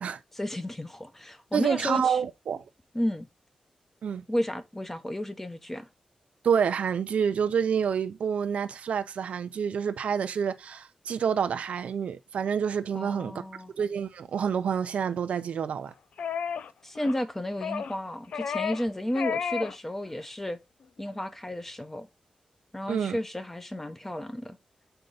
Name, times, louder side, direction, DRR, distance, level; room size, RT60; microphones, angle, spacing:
voice 1, 0.3-2.2 2.9-3.3 4.3-5.9 12.9-13.7 16.8-20.6 21.0-22.1 22.7-24.6, left 1 dB, 15° left, 0.8 m, -32 dB
voice 2, 1.5-2.6 4.0-4.2 6.4-13.3 13.8-15.9 22.9-23.2, right 7 dB, 80° right, 0.5 m, -28 dB
sound 1, 16.2-16.7 16.9-17.2 17.6-18.0 18.3-18.9 19.1-19.7 20.1-20.2, left 7 dB, 90° left, 0.5 m, -32 dB
6.8 x 4.4 x 3.9 m
wide cardioid pair, 120°, 2 cm